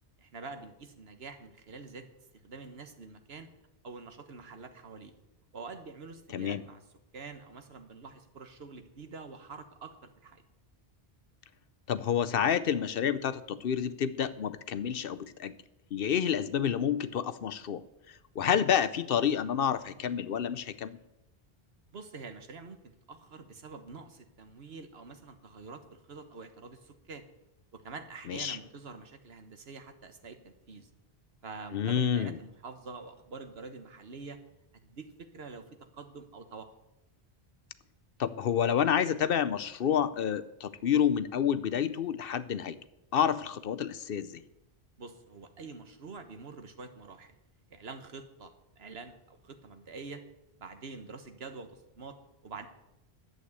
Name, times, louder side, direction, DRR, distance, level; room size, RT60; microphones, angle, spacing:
voice 1, 0.2-2.1 2.3-3.5 3.8-5.1 5.5-6.8 7.1-10.4 21.9-27.2 27.7-30.9 31.4-34.4 34.8-35.6 35.9-36.7 45.0-47.3 47.7-50.2 50.6-52.7, right 4 dB, 75° right, 8 dB, 1.4 m, -46 dB
voice 2, 11.9-15.5 15.9-17.8 18.4-21.0 28.3-28.6 31.7-32.4 38.2-42.8 43.1-44.4, left 8 dB, 65° left, 14 dB, 0.8 m, -29 dB
11.5 x 8.1 x 8.1 m, 0.90 s
omnidirectional pair, 1.1 m